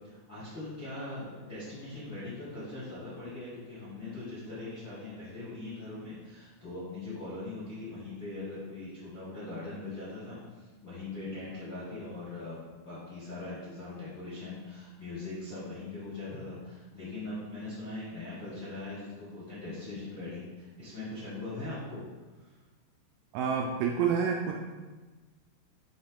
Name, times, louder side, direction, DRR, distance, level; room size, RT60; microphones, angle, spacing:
voice 1, 0.0-22.0 22.4-22.5, left 2 dB, 60° left, -11 dB, 1.2 m, -41 dB
voice 2, 23.3-24.6, right 6 dB, 85° right, 0 dB, 2.8 m, -28 dB
10.0 x 3.6 x 3.7 m, 1.3 s
omnidirectional pair, 5.9 m